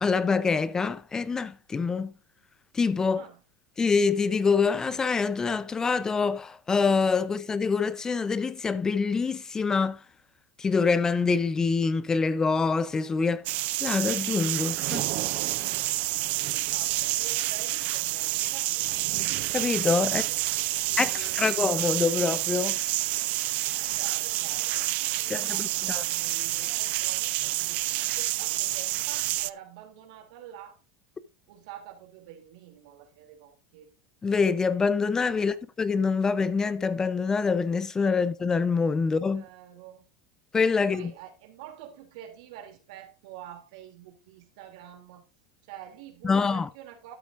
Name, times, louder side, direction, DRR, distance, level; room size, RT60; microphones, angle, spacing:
voice 1, 0.0-2.1 2.7-3.2 3.8-10.0 10.6-13.4 13.8-15.1 19.5-20.2 21.0-22.8 25.3-26.0 34.2-39.4 40.5-41.1 46.2-46.7, left 5 dB, 20° left, 0.6 m, -25 dB
sound 1, 13.5-29.5, right 19 dB, 55° right, 0.4 m, -28 dB
voice 2, 16.5-19.1 20.0-21.6 23.1-23.2 23.8-27.8 28.2-30.8 31.5-33.9 35.4-35.6 39.0-40.0 40.8-45.2 45.6-47.2, right 10 dB, 75° right, 2.7 m, -47 dB
12.5 x 8.2 x 2.5 m
supercardioid pair, 115°, 3 cm